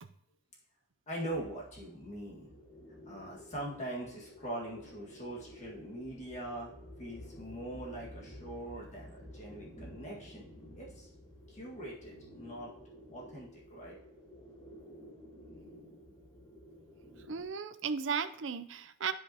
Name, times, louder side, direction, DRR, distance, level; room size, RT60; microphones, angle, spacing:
voice 1, 1.1-2.5 3.1-6.7 7.0-10.4 10.7-11.1 11.5-12.7 13.1-14.0, right 1 dB, 35° left, -4 dB, 1.8 m, -42 dB
sound 1, 1.3-17.5, left 1 dB, 20° left, 1.3 m, -52 dB
voice 2, 17.3-19.1, right 6 dB, 65° right, 11 dB, 0.5 m, -35 dB
11.5 x 5.2 x 2.9 m, 0.76 s
head